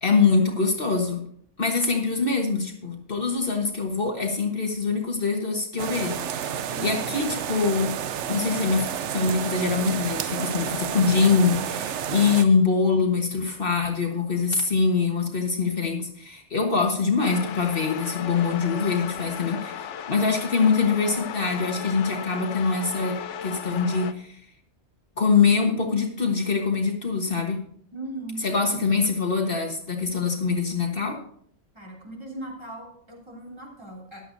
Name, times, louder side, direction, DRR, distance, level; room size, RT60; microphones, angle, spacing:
voice 1, 0.0-1.2 1.6-7.9 8.3-24.4 25.2-27.6 28.4-31.2, left 4 dB, 55° left, 1 dB, 1.5 m, -24 dB
sound 1, 5.8-12.5, right 9 dB, 80° right, 1.0 m, -30 dB
voice 2, 6.7-7.0 27.9-29.0 31.7-34.2, right 1 dB, 25° right, -3 dB, 3.2 m, -39 dB
sound 2, 17.2-24.1, left 8 dB, 90° left, 1.0 m, -36 dB
14.5 x 11.0 x 2.7 m, 0.63 s
omnidirectional pair, 1.2 m